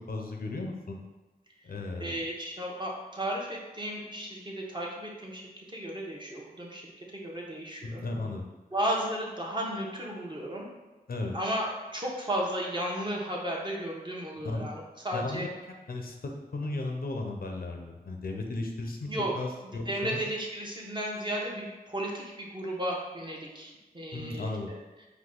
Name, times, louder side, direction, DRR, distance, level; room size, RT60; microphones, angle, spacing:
voice 1, 0.1-1.0 1.6-2.1 7.8-8.5 11.1-11.4 14.4-14.7 15.1-15.5 15.9-19.1 19.3-20.2 24.1-24.7, left 2 dB, 70° left, 2 dB, 0.6 m, -35 dB
voice 2, 2.0-5.4 5.7-8.0 8.7-10.7 11.3-15.5 19.1-19.3 19.6-24.8, right 1 dB, 30° right, -2 dB, 0.9 m, -34 dB
4.8 x 2.3 x 3.8 m, 1.1 s
wide cardioid pair, 50°, 16 cm